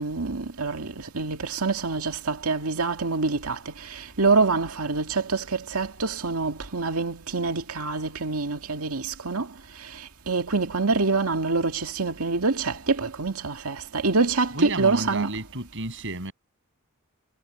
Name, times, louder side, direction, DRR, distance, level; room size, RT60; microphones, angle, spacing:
voice 1, 0.0-9.5 10.3-15.3, right 4 dB, 90° right, 2.1 m, -26 dB
voice 2, 14.5-16.3, right 2 dB, 60° right, 7.7 m, -32 dB
head